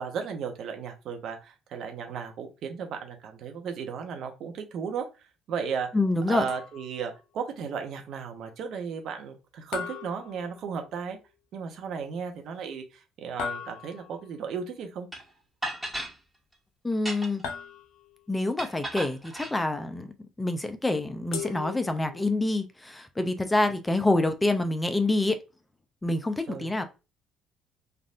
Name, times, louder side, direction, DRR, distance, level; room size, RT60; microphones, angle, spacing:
voice 1, 0.0-5.1 5.5-5.9 6.3-11.2 11.5-15.1 26.5-26.7, right 6 dB, 60° right, 0.7 m, -35 dB
voice 2, 5.9-6.4 16.8-17.4 18.3-20.1 20.4-25.4 26.0-26.9, left 2 dB, 15° left, 0.5 m, -26 dB
sound 1, 6.5-7.1 9.7-11.0 13.4-14.3 17.4-18.3 21.3-22.3, left 7 dB, 70° left, 0.6 m, -38 dB
sound 2, 15.1-15.2 15.6-16.1 16.9-17.5 18.6-19.5, right 1 dB, 10° right, 1.5 m, -35 dB
3.3 x 2.5 x 2.4 m
hypercardioid pair, 55°, 0 cm